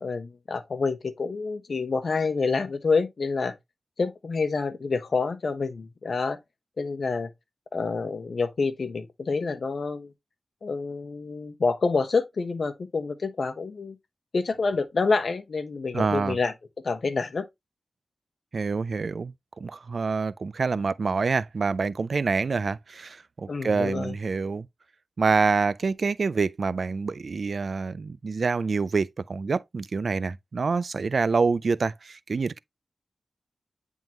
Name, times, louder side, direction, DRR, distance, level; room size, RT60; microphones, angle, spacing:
voice 1, 0.0-3.5 4.0-6.4 6.8-7.3 7.7-10.1 10.6-14.0 14.3-16.5 16.8-17.4 23.5-24.1, left 4 dB, 55° left, 0.9 m, -27 dB
voice 2, 15.9-16.4 18.5-24.7 25.2-32.6, right 4 dB, 55° right, 0.3 m, -26 dB
9.1 x 3.6 x 2.9 m
wide cardioid pair, 115°, 0 cm